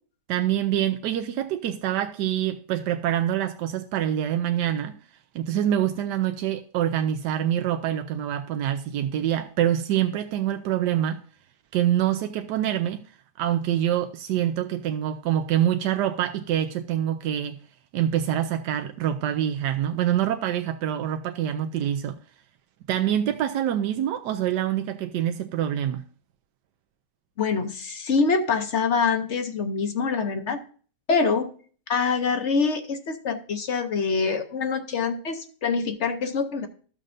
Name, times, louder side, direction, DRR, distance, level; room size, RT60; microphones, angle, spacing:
voice 1, 0.3-5.0 5.3-11.2 11.7-13.0 13.4-17.6 17.9-22.2 22.9-26.1, right 11 dB, 85° right, 1.2 m, -25 dB
voice 2, 27.4-30.6 31.1-31.5 31.9-36.7, left 5 dB, 55° left, 0.9 m, -25 dB
13.5 x 6.5 x 2.6 m
omnidirectional pair, 1.8 m